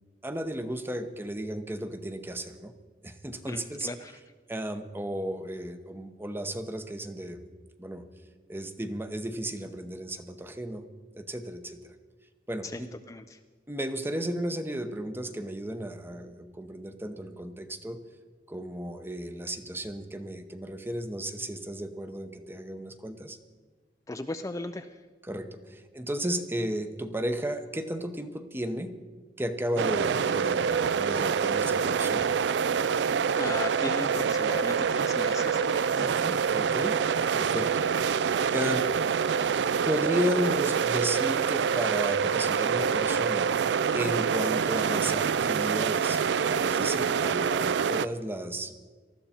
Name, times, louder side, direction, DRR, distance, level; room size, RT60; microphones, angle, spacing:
voice 1, 0.2-2.7 3.0-3.9 4.5-7.4 7.8-8.0 8.5-10.9 11.1-11.9 12.5-12.9 13.7-18.0 18.5-23.4 25.3-28.9 29.4-32.3 35.9-37.0 37.3-37.9 38.5-38.9 39.8-43.5 43.9-48.7, right 1 dB, 15° right, 8 dB, 0.8 m, -34 dB
voice 2, 3.5-4.2 12.6-12.8 13.1-13.4 24.1-25.0 32.9-36.1, left 2 dB, 20° left, 7 dB, 0.4 m, -37 dB
sound 1, 29.8-48.1, right 6 dB, 80° right, 0.4 m, -26 dB
19.0 x 13.5 x 4.3 m, 1.4 s
head